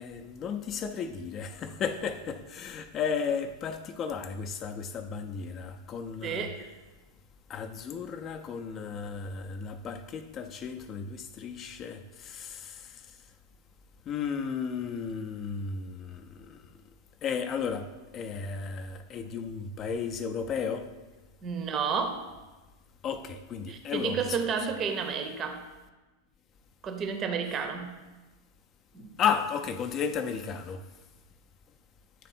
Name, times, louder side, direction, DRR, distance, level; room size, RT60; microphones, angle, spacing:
voice 1, 0.0-6.5 7.5-13.0 14.1-16.6 17.2-17.9 18.1-20.9 23.0-24.4 29.2-30.8, left 6 dB, 30° left, 0.4 m, -34 dB
voice 2, 6.2-6.7 21.4-22.3 23.7-25.7 26.8-28.0 28.9-29.2, right 6 dB, 30° right, 0.7 m, -31 dB
9.0 x 3.4 x 4.1 m
figure-of-eight pair, 90°, 0 cm